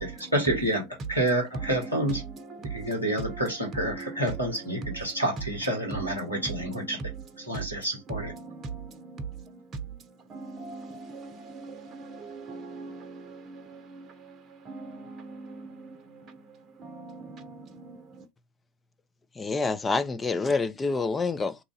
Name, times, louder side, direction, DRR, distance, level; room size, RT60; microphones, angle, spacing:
voice 1, 0.0-0.8 1.1-2.2 2.7-7.0 7.4-8.3, right 1 dB, 90° left, 1.5 m, -28 dB
voice 2, 8.5-8.8 9.1-9.2 10.3-13.2 14.7-15.7 16.8-17.4, right 3 dB, 35° right, 0.8 m, -41 dB
voice 3, 19.4-21.6, left 4 dB, 20° left, 0.6 m, -27 dB
2.9 x 2.5 x 3.8 m
figure-of-eight pair, 75°, 0 cm